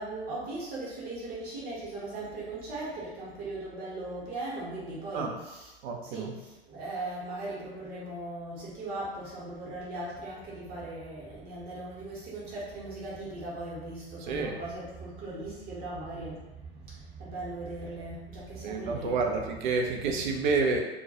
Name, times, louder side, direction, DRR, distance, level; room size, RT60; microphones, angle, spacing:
voice 1, 0.0-5.7 6.0-19.2, right 2 dB, 30° right, -6 dB, 0.9 m, -39 dB
voice 2, 5.8-6.3 14.2-14.6 18.6-20.8, right 4 dB, 50° right, 2 dB, 0.5 m, -29 dB
2.2 x 2.2 x 2.7 m, 1.1 s
figure-of-eight pair, 95°, 32 cm